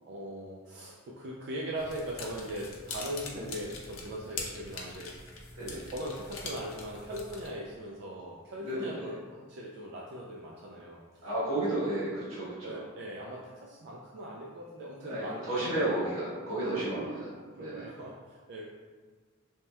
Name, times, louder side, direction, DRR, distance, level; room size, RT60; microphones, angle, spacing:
voice 1, 0.0-11.3 11.7-11.9 12.6-16.0 16.7-17.1 17.5-18.7, equal, 55° right, -3 dB, 0.3 m, -40 dB
sound 1, 1.8-7.5, left 3 dB, 80° left, 0.5 m, -43 dB
voice 2, 8.6-9.1 11.2-12.8 15.0-17.3 17.6-17.9, right 1 dB, 85° right, -9 dB, 1.4 m, -32 dB
2.8 x 2.1 x 3.2 m, 1.5 s
head